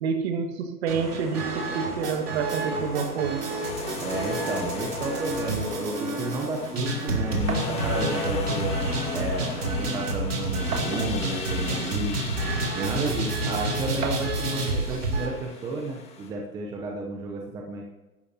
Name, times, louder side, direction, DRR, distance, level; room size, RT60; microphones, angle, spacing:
voice 1, 0.0-3.4, right 6 dB, 45° right, 6 dB, 1.9 m, -28 dB
sound 1, 0.9-15.3, right 2 dB, 85° right, 3.9 m, -30 dB
sound 2, 1.0-2.5 3.4-16.3, left 3 dB, 15° left, 1.6 m, -37 dB
voice 2, 4.0-8.7 9.1-12.2 12.7-17.9, right 2 dB, 10° right, 1 dB, 0.7 m, -32 dB
sound 3, 7.5-7.8 8.9-9.0 9.4-9.5 10.7-11.4 12.2-12.3 14.0-14.4, right 4 dB, 70° right, 2.7 m, -33 dB
16.5 x 13.0 x 2.9 m, 1.1 s
hypercardioid pair, 140°, 45 cm